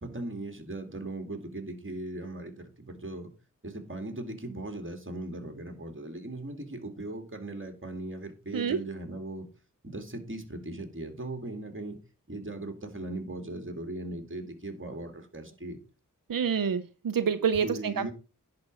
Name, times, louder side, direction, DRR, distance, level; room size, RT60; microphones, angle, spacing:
voice 1, 0.0-3.3 3.6-9.5 9.8-12.0 12.3-15.8 17.5-18.1, right 2 dB, 35° right, 2.4 m, -38 dB
voice 2, 16.3-18.1, right 7 dB, 90° right, 0.7 m, -27 dB
10.5 x 4.3 x 6.2 m
wide cardioid pair, 50°, 33 cm